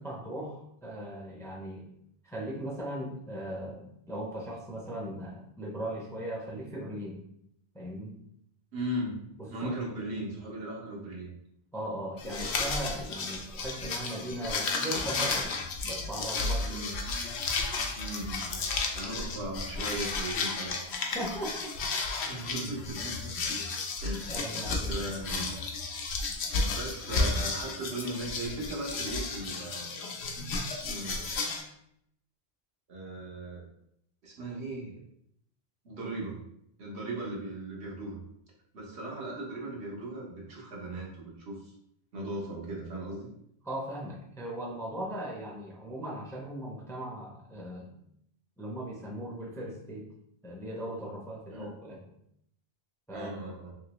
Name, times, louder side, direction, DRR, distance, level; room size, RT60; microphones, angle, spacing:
voice 1, 0.0-1.9 2.2-7.2 7.7-8.1 9.4-9.7 11.7-15.6 15.8-16.7 21.0-21.6 24.3-25.0 43.6-47.9 48.6-50.1 50.4-52.2 53.1-53.3, right 1 dB, 5° left, -1 dB, 0.4 m, -38 dB
voice 2, 8.7-9.2 9.5-11.3 16.6-16.9 18.0-18.6 18.9-20.8 22.2-23.3 24.0-24.4 24.9-25.6 26.5-30.1 30.7-31.3 32.9-33.7 34.2-35.0 35.8-36.4 36.8-38.2 38.7-41.7 42.1-43.3 51.5-51.7 53.1-53.7, right 1 dB, 90° right, -3 dB, 1.3 m, -38 dB
sound 1, 12.2-31.6, left 3 dB, 80° left, 0.9 m, -33 dB
3.2 x 2.9 x 3.0 m, 0.73 s
omnidirectional pair, 1.1 m